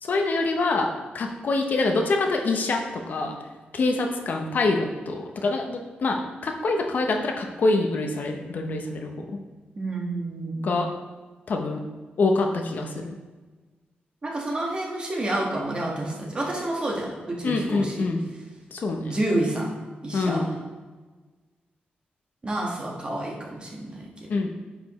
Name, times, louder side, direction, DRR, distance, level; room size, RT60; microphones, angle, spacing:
voice 1, 0.0-3.4 3.7-9.2 10.6-10.9 11.5-11.9 12.2-13.2 17.4-18.2 18.7-19.2 20.1-20.5 24.3-24.5, left 3 dB, 60° left, 3 dB, 0.8 m, -25 dB
voice 2, 9.8-10.7 14.2-18.1 19.1-19.7 20.0-20.5 22.4-24.3, right 1 dB, 30° right, -2 dB, 1.6 m, -29 dB
9.5 x 5.1 x 3.1 m, 1.3 s
wide cardioid pair, 125°, 3 cm